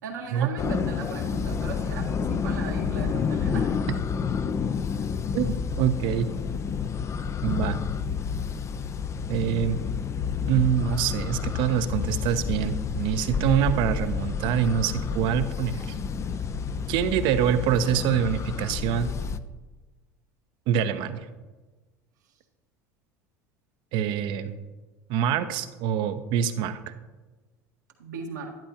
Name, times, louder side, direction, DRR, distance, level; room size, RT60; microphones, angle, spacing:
voice 1, 0.0-3.8 28.0-28.6, right 5 dB, 90° right, -1 dB, 1.6 m, -37 dB
sound 1, 0.6-19.4, left 6 dB, 30° left, 0.5 m, -29 dB
voice 2, 5.3-6.3 7.4-7.8 9.3-9.8 10.5-15.9 16.9-19.1 20.7-21.2 23.9-24.6 25.1-26.9, right 9 dB, 60° right, 10 dB, 0.8 m, -25 dB
12.0 x 11.0 x 2.9 m, 1.2 s
hypercardioid pair, 80°, 9 cm